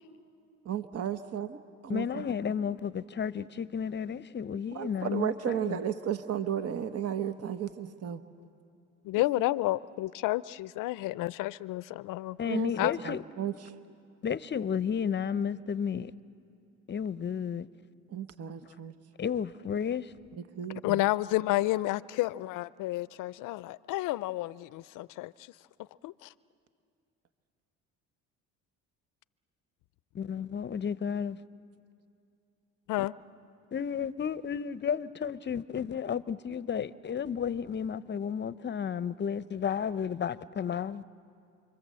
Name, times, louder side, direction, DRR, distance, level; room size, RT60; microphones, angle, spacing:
voice 1, 0.6-2.2 4.7-8.2 12.5-13.7 18.1-18.9 20.6-21.0, right 9 dB, 50° right, 1.1 m, -34 dB
voice 2, 1.9-5.8 12.4-13.2 14.2-16.1 16.9-17.7 18.6-18.8 19.2-20.1 30.1-31.4 33.0-33.1 33.7-41.0, left 7 dB, 35° left, 0.7 m, -32 dB
voice 3, 9.0-12.4 12.8-13.0 20.8-25.3 26.0-26.3 32.9-33.1, left 17 dB, 70° left, 0.6 m, -30 dB
28.5 x 24.5 x 7.6 m
supercardioid pair, 90°, 32 cm